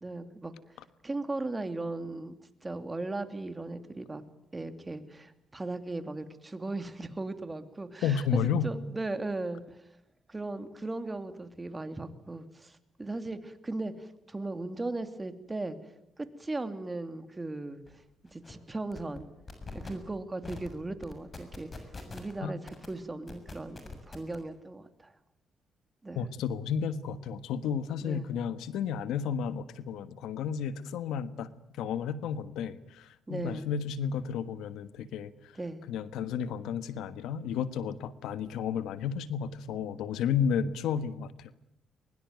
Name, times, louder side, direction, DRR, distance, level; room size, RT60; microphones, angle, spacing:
voice 1, 0.0-0.5 1.0-2.4 2.6-4.2 4.5-9.6 10.3-15.8 16.2-17.8 18.3-19.3 19.7-25.1 26.0-26.3 28.0-28.3 33.3-33.7 35.5-35.8, right 2 dB, 20° right, 9 dB, 2.7 m, -37 dB
voice 2, 8.0-8.7 22.4-22.5 26.1-31.5 31.8-35.3 35.9-41.5, left 7 dB, 90° left, 14 dB, 1.3 m, -32 dB
sound 1, 17.9-18.0 18.3-18.5 18.9-19.2 19.5-19.9 20.4-20.7 21.0-22.3 22.7-22.9 23.3-24.4, left 3 dB, 35° left, 6.9 m, -43 dB
22.5 x 22.0 x 9.3 m, 0.79 s
cardioid pair, 80°, 0 cm